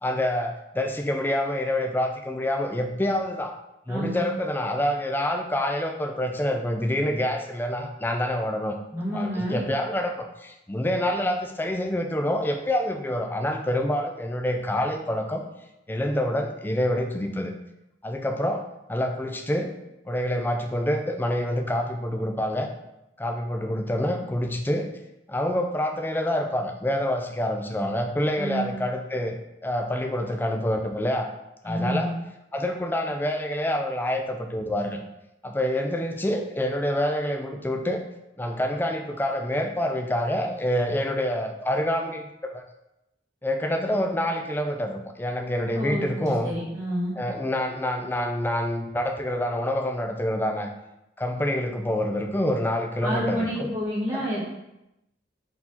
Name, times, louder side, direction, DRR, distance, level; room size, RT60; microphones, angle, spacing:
voice 1, 0.0-3.5 3.9-8.8 9.1-15.4 15.9-17.5 18.0-18.6 18.9-19.7 20.1-22.7 23.2-24.9 25.3-29.4 29.6-31.3 31.6-32.1 32.5-35.0 35.4-38.0 38.4-42.6 43.4-46.5 47.2-50.7 51.2-53.7 54.1-54.2, left 1 dB, 10° left, 3 dB, 0.4 m, -27 dB
voice 2, 3.9-4.2 8.9-9.6 28.4-28.7 31.6-32.1 45.7-47.1 53.0-54.5, equal, 20° right, -9 dB, 1.5 m, -29 dB
4.6 x 2.8 x 3.7 m, 0.89 s
head